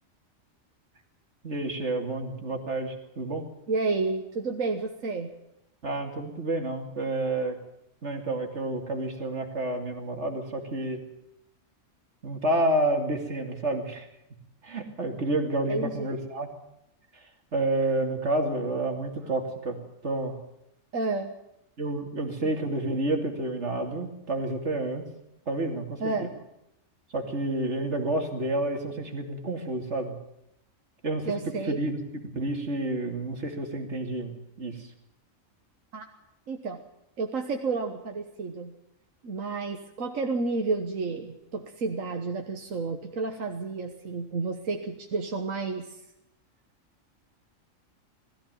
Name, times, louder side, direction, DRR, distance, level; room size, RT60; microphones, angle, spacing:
voice 1, 1.4-3.5 5.8-7.6 8.0-11.0 12.2-14.1 14.6-16.5 17.5-20.4 21.8-25.0 25.5-26.1 27.1-30.2 31.0-31.3 31.7-32.0 32.3-34.9, right 2 dB, 60° right, 4 dB, 3.0 m, -29 dB
voice 2, 3.7-5.3 15.7-16.1 20.9-21.3 26.0-26.3 31.3-31.8 35.9-36.1 36.5-36.8 37.2-38.7 39.2-46.0, right 3 dB, 80° right, 4 dB, 1.8 m, -31 dB
20.5 x 14.5 x 9.0 m, 0.83 s
omnidirectional pair, 1.4 m